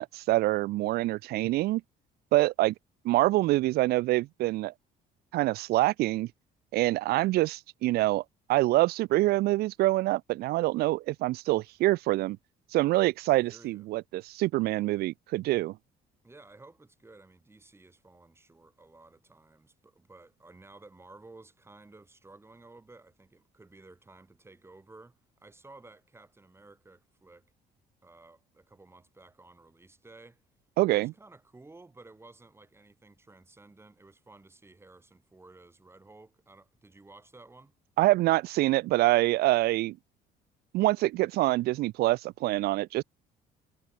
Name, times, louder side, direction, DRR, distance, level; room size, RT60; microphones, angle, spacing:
voice 1, 0.0-1.8 2.3-2.7 3.0-4.7 5.3-6.3 6.7-8.2 8.5-12.4 12.7-15.8 30.8-31.1 38.0-40.0 40.7-43.0, right 18 dB, 70° right, 0.4 m, -25 dB
voice 2, 13.3-13.9 16.2-27.5 28.0-30.4 30.9-37.8, right 2 dB, 15° right, 3.9 m, -54 dB
cardioid pair, 110°, 17 cm